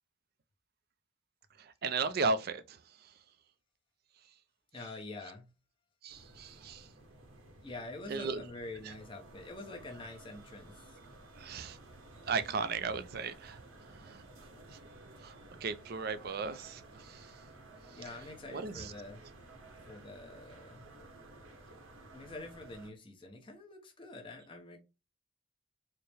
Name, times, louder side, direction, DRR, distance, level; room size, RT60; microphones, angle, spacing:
voice 1, 1.6-3.1 4.8-4.9 5.2-5.3 6.0-6.9 8.1-8.4 8.8-8.9 9.9-10.0 11.4-11.8 12.3-14.3 14.7-14.8 15.2-17.3 17.9-19.0, right 4 dB, 50° right, 0.4 m, -37 dB
voice 2, 4.7-5.5 7.6-11.0 17.9-19.2 19.9-20.9 22.1-24.8, left 2 dB, 25° left, 0.7 m, -46 dB
sound 1, 6.1-22.9, right 2 dB, 85° right, 0.9 m, -54 dB
4.4 x 2.1 x 3.3 m
head